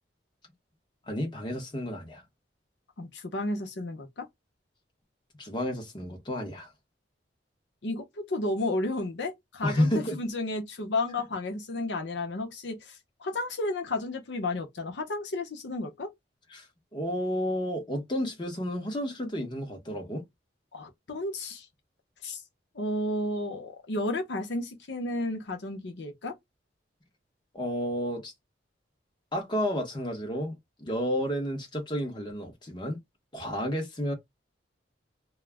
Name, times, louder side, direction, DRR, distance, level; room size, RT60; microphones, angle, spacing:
voice 1, 1.1-2.2 5.4-6.7 9.6-10.2 16.5-16.6 16.9-20.2 27.5-28.3 29.3-33.0 33.3-34.1, equal, 25° left, 0.8 m, -31 dB
voice 2, 3.0-4.3 7.8-16.1 20.7-21.7 22.2-22.4 22.7-26.3, left 2 dB, 80° left, 0.7 m, -32 dB
2.3 x 2.0 x 3.3 m
head